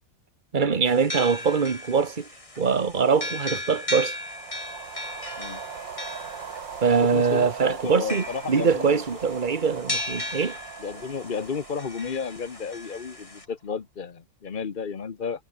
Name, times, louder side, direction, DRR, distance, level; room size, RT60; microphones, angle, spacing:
voice 1, 0.5-2.2 2.6-4.1 6.8-10.5, right 5 dB, 30° right, 1.5 m, -23 dB
sound 1, 0.9-13.4, left 2 dB, 15° left, 2.7 m, -37 dB
sound 2, 4.1-13.6, right 7 dB, 80° right, 2.6 m, -41 dB
voice 2, 6.8-9.0 10.8-15.4, left 5 dB, 35° left, 0.9 m, -33 dB
omnidirectional pair, 2.0 m